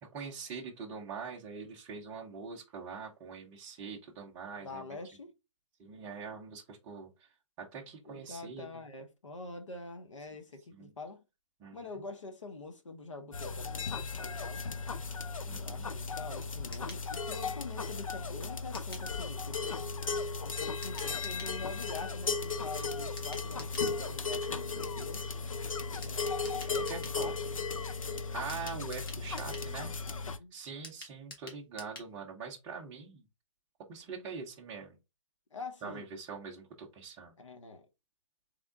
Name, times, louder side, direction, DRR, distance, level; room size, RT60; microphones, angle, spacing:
voice 1, 0.0-4.8 5.8-7.1 7.6-8.7 10.7-10.9 11.6-11.8 15.5-15.9 26.9-27.4 28.3-29.9 30.5-33.2 33.9-35.0 35.8-37.3, right 5 dB, 10° right, 0.5 m, -43 dB
voice 2, 4.6-5.3 8.0-11.2 11.7-14.7 15.5-19.8 20.4-25.2 26.0-27.6 30.3-30.5 35.5-36.1 37.4-37.9, left 3 dB, 70° left, 1.3 m, -45 dB
sound 1, 13.3-30.4, left 4 dB, 90° left, 0.6 m, -36 dB
sound 2, 16.7-17.1 18.7-19.1 20.8-21.6 23.2-23.9 26.0-27.2 28.5-29.7 30.8-32.1 32.4-32.5 32.8-32.9, left 2 dB, 45° left, 1.6 m, -49 dB
3.5 x 3.5 x 3.7 m
hypercardioid pair, 160°, 17 cm